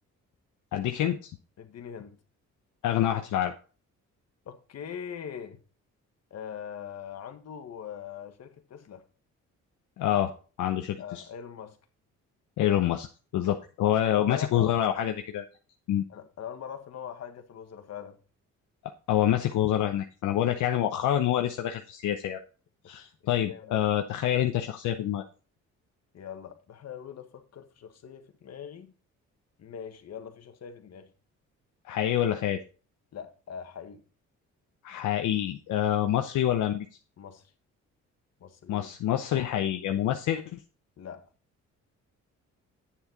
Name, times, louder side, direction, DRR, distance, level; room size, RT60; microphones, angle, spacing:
voice 1, 0.7-1.3 2.8-3.5 10.0-11.2 12.6-13.1 13.3-15.4 15.9-16.0 19.1-22.4 22.9-25.2 31.8-32.6 34.8-36.9 38.7-40.6, left 11 dB, 80° left, 0.8 m, -27 dB
voice 2, 1.6-2.2 4.4-5.6 6.3-9.0 11.0-11.8 14.0-14.7 16.1-18.2 23.2-23.8 26.1-28.9 29.6-31.1 33.1-34.0 37.2-37.4 38.4-39.4 41.0-41.3, left 8 dB, 60° left, 1.5 m, -42 dB
8.8 x 7.3 x 3.9 m
cardioid pair, 90°, 30 cm